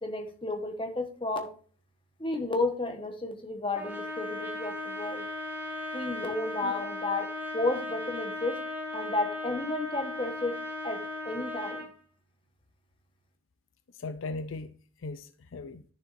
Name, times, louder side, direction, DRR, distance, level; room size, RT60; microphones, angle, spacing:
voice 1, 0.0-1.5 2.2-5.2 5.9-7.3 7.5-8.6 8.9-10.6 10.8-11.9, left 2 dB, 25° left, 1.2 m, -32 dB
Trumpet, 3.7-11.9, left 2 dB, 10° right, 1.3 m, -37 dB
voice 2, 13.9-15.8, left 3 dB, 70° left, 0.5 m, -39 dB
10.5 x 6.8 x 2.6 m
head